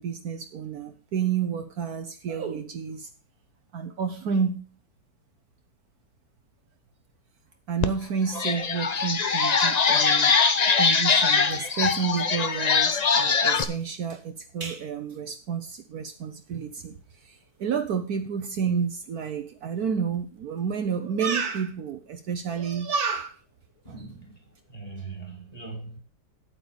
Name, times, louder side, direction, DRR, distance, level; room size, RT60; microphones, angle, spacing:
voice 1, 0.0-3.1 3.7-4.6 7.7-23.4, right 6 dB, 65° right, 7 dB, 1.2 m, -30 dB
sound 1, 7.8-7.9 8.3-13.6, left 5 dB, 85° left, 0.3 m, -22 dB
voice 2, 23.8-24.4 24.7-26.0, right 4 dB, 20° left, 2 dB, 2.5 m, -40 dB
8.9 x 8.8 x 5.1 m, 0.37 s
omnidirectional pair, 1.9 m